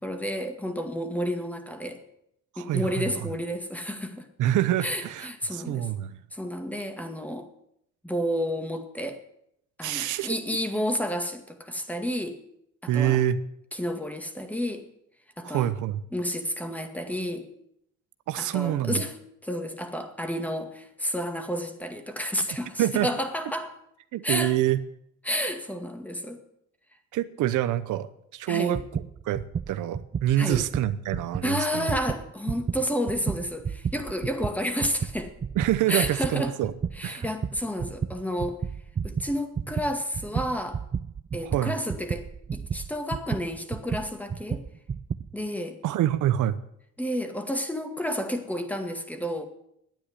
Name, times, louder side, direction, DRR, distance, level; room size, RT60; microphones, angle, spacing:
voice 1, 0.0-2.0 2.6-4.3 4.8-5.9 6.3-7.5 8.0-9.2 9.8-12.4 12.8-13.2 13.7-14.9 15.4-15.7 16.1-17.5 18.3-23.7 24.2-24.6 25.2-26.4 28.5-28.8 30.4-30.7 31.4-35.3 35.9-36.5 37.0-38.6 39.0-40.8 41.3-44.6 45.3-45.8 47.0-49.4, equal, 5° left, 6 dB, 2.1 m, -31 dB
voice 2, 2.6-3.1 4.4-6.2 9.8-10.3 12.9-13.4 15.4-16.0 18.3-19.0 22.8-23.1 24.1-24.8 27.1-28.8 29.2-31.9 35.6-36.7 37.0-37.3 41.5-41.7 45.8-46.6, right 12 dB, 85° right, 13 dB, 0.8 m, -26 dB
sound 1, 28.7-31.5 31.8-45.3, right 6 dB, 25° right, 0.5 m, -32 dB
10.5 x 8.9 x 9.8 m, 0.75 s
cardioid pair, 90°, 30 cm